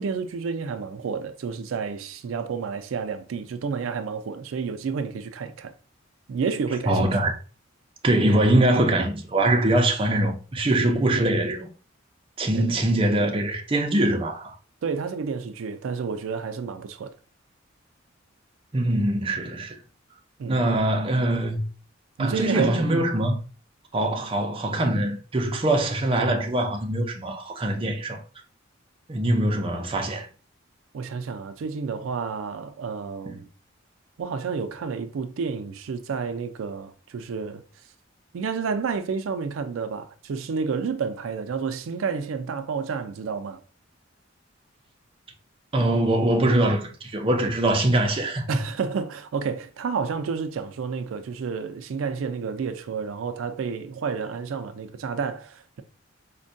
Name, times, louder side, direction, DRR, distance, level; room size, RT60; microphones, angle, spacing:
voice 1, 0.0-5.7 6.3-7.2 12.5-12.7 14.8-17.1 20.4-20.6 22.2-23.1 30.9-33.5 34.2-37.6 38.3-43.6 48.5-55.8, right 5 dB, 85° right, 0.4 m, -30 dB
voice 2, 6.9-7.3 8.0-11.7 12.4-14.5 18.7-19.8 20.5-21.6 22.2-23.4 23.9-28.2 29.1-30.3 33.3-33.4 45.7-48.6, right 1 dB, 25° right, 0.5 m, -23 dB
4.4 x 2.2 x 2.5 m
head